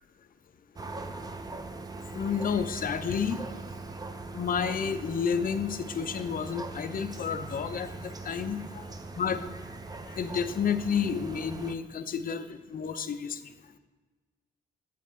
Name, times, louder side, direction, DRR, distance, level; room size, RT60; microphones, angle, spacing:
sound 1, 0.8-11.7, right 3 dB, 20° right, 0.5 m, -41 dB
voice 1, 2.1-3.4 4.3-8.9 9.1-9.4 10.1-13.4, left 7 dB, 45° left, 9 dB, 0.5 m, -30 dB
7.7 x 5.1 x 3.2 m, 1.3 s
cardioid pair, 90°, 20 cm